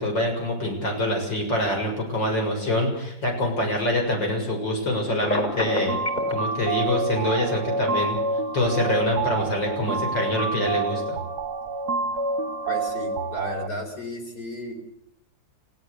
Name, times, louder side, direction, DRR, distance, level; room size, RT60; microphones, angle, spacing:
voice 1, 0.0-6.0 6.3-8.2 8.5-11.2, left 1 dB, 75° left, 2 dB, 7.5 m, -25 dB
Telephone, 5.2-6.3, left 1 dB, 20° left, 3.7 m, -26 dB
sound 1, 5.7-13.7, right 3 dB, 60° right, 1.5 m, -28 dB
voice 2, 12.7-14.7, left 1 dB, 55° left, 3 dB, 4.8 m, -33 dB
29.5 x 16.5 x 6.9 m, 0.77 s
omnidirectional pair, 2.0 m